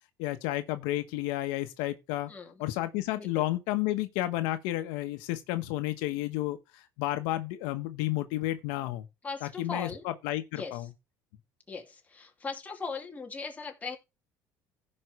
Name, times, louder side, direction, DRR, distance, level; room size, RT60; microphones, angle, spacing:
voice 1, 0.2-2.3 2.6-9.1 9.4-10.9, left 16 dB, 85° left, 1.2 m, -31 dB
voice 2, 2.3-2.6 3.2-3.5 9.2-10.1 10.6-10.9 11.7-14.0, left 4 dB, 20° left, 2.6 m, -39 dB
16.0 x 5.4 x 3.3 m
cardioid pair, 125°, 8 cm